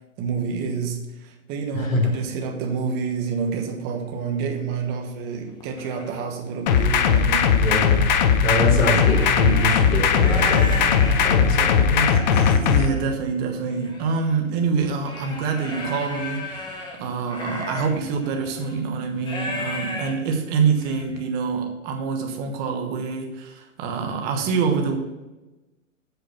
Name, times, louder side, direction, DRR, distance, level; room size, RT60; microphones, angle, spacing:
voice 1, 0.2-7.6 8.9-9.1 11.0-11.3 12.0-25.0, right 5 dB, 25° right, 4 dB, 1.2 m, -27 dB
voice 2, 1.7-2.1 7.5-8.1 8.4-12.1, left 1 dB, 80° left, -1 dB, 3.9 m, -24 dB
sound 1, 3.3-3.4 3.9-4.1 4.8-4.9 5.3-6.2 6.7-8.1 8.7-21.2, left 2 dB, 10° left, 1.1 m, -35 dB
sound 2, 6.7-12.9, left 6 dB, 35° left, 0.7 m, -18 dB
8.1 x 6.2 x 7.1 m, 1.1 s
hypercardioid pair, 150°, 40 cm